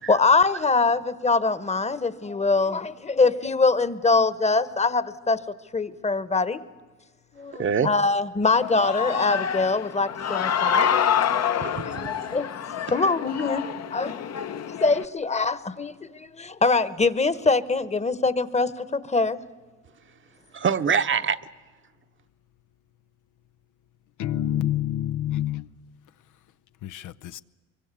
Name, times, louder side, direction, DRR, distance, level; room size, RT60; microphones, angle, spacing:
voice 1, 0.1-5.4 5.7-6.6 7.3-10.9 11.2-11.9 12.3-12.5 12.9-14.1 14.7-19.4, left 3 dB, 20° left, 1.1 m, -23 dB
voice 2, 7.5-7.9 11.6-12.4 12.9-13.1 20.5-21.4, right 6 dB, 40° right, 0.9 m, -25 dB
Human voice / Cheering, 8.4-15.0, left 8 dB, 55° left, 1.0 m, -27 dB
voice 3, 24.2-25.7 26.8-27.4, left 12 dB, 80° left, 0.7 m, -27 dB
24.5 x 23.0 x 8.3 m
cardioid pair, 90°, 30 cm